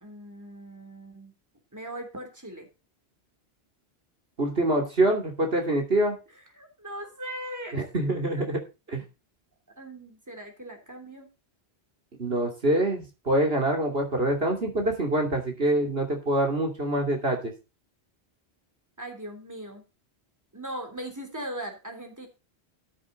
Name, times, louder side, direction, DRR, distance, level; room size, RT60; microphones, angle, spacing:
voice 1, 0.0-1.3 1.7-2.7 6.5-8.0 9.8-11.3 19.0-19.8 20.5-22.3, right 1 dB, 15° right, 4 dB, 3.2 m, -39 dB
voice 2, 4.4-6.2 7.7-8.6 8.9-9.0 12.2-17.5, right 1 dB, 65° right, 2 dB, 3.1 m, -25 dB
13.5 x 7.7 x 3.9 m, 0.29 s
omnidirectional pair, 1.1 m